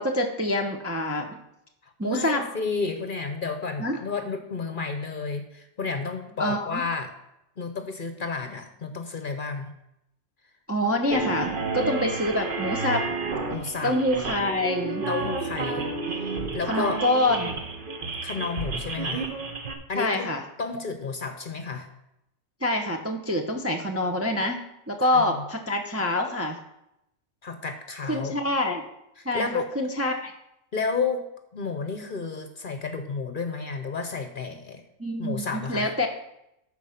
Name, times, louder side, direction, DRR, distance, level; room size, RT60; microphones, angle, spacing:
voice 1, 0.0-1.4 2.0-2.4 3.8-4.0 6.4-6.8 10.7-13.0 13.8-15.1 16.7-17.6 20.0-20.4 22.6-26.6 28.0-28.8 29.2-30.3 35.0-36.1, left 1 dB, 15° right, 2 dB, 0.6 m, -26 dB
voice 2, 2.0-7.1 7.6-9.7 13.5-14.0 15.1-15.8 16.2-17.0 18.2-19.3 19.9-20.3 20.6-21.9 25.1-25.3 27.4-28.3 29.2-29.7 30.7-31.3 31.5-34.8 35.2-35.9, left 4 dB, 45° left, 7 dB, 0.9 m, -31 dB
sound 1, 11.1-19.7, right 3 dB, 45° right, 1.0 m, -31 dB
12.5 x 4.6 x 5.8 m, 0.84 s
omnidirectional pair, 1.4 m